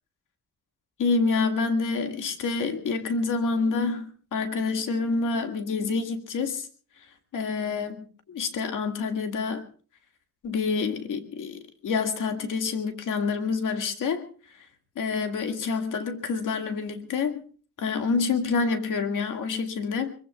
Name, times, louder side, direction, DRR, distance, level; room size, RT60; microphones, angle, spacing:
voice 1, 1.0-6.7 7.3-9.7 10.4-14.3 15.0-17.4 17.8-20.2, left 4 dB, 80° left, 5 dB, 2.2 m, -27 dB
24.0 x 23.0 x 2.4 m, 0.40 s
cardioid pair, 115°, 31 cm